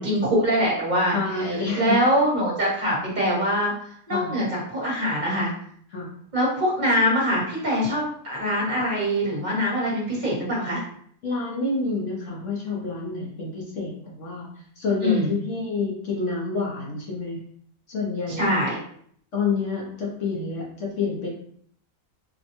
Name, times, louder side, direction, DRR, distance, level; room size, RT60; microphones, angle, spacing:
voice 1, 0.0-1.2 1.8-3.7 4.1-5.5 6.3-10.8 15.0-15.3 18.4-18.8, equal, 35° right, -4 dB, 1.2 m, -23 dB
voice 2, 1.1-2.0 4.1-4.4 5.9-6.1 11.2-14.5 14.8-17.4 17.9-18.5 19.3-21.3, left 4 dB, 60° left, -3 dB, 1.1 m, -28 dB
4.1 x 2.2 x 2.9 m, 0.63 s
omnidirectional pair, 1.5 m